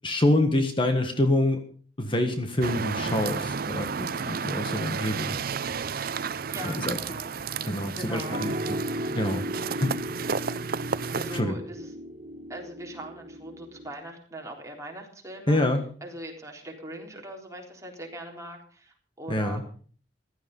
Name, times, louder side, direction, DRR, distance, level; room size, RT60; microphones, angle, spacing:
voice 1, 0.0-1.6 2.0-5.4 6.6-7.0 7.6-8.8 9.2-9.4 9.8-9.9 11.3-11.5 15.5-15.8 19.3-19.6, left 1 dB, 30° left, 6 dB, 1.6 m, -26 dB
sound 1, 2.6-11.4, right 6 dB, 55° right, 0.6 m, -32 dB
voice 2, 6.3-7.4 8.0-8.4 10.9-11.9 12.5-15.6 16.0-19.6, right 1 dB, 20° right, 0 dB, 3.9 m, -41 dB
sound 2, 8.1-13.9, equal, 40° right, 4.6 m, -36 dB
15.5 x 13.0 x 5.4 m, 0.43 s
head